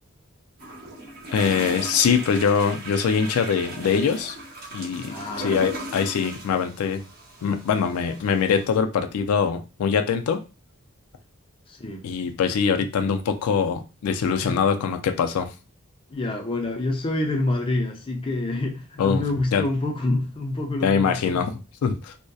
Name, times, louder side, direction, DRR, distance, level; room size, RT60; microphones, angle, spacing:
sound 1, 0.6-8.6, right 1 dB, 50° right, 0.7 m, -37 dB
voice 1, 1.3-4.4 4.7-7.0 7.4-10.4 12.0-15.5 19.0-19.2 19.5-19.6 20.8-21.5 21.8-22.1, left 6 dB, 90° left, 0.3 m, -23 dB
voice 2, 5.1-5.5 11.7-12.0 14.4-14.6 16.1-21.4, left 2 dB, 25° left, 0.4 m, -27 dB
2.6 x 2.1 x 2.2 m
head